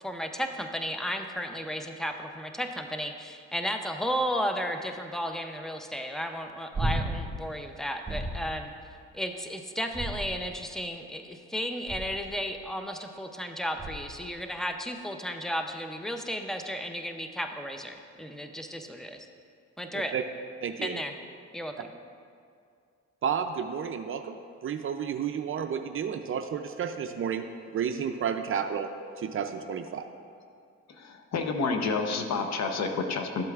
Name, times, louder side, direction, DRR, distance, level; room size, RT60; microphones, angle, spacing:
voice 1, 0.0-8.7 9.1-19.3 19.8-20.1 20.8-21.1 21.5-21.9, equal, ahead, 5 dB, 0.6 m, -34 dB
sound 1, 6.7-7.4 8.1-8.6 9.9-10.6 11.9-12.3 13.8-14.2 16.6-16.7, right 1 dB, 15° right, 1.9 m, -33 dB
voice 2, 20.6-21.0 23.2-27.4 27.7-28.9 29.2-30.0, right 7 dB, 45° right, 7 dB, 0.5 m, -31 dB
voice 3, 31.0-33.4, left 4 dB, 60° left, 5 dB, 0.8 m, -29 dB
12.5 x 7.6 x 2.4 m, 2.3 s
cardioid pair, 90°, 30 cm